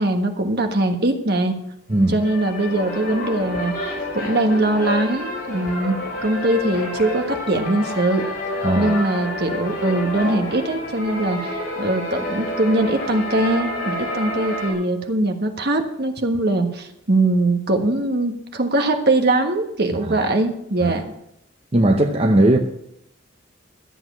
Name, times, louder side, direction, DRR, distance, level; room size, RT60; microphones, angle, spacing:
voice 1, 0.0-1.5 2.1-8.2 8.7-11.5 11.8-21.0, right 2 dB, 55° right, 1.5 m, -21 dB
sound 1, 1.9-14.7, left 1 dB, 45° left, 5.2 m, -29 dB
voice 2, 1.9-2.2 8.6-8.9 20.8-20.9 21.7-22.6, right 1 dB, 30° right, 0.8 m, -17 dB
13.5 x 7.9 x 6.1 m
head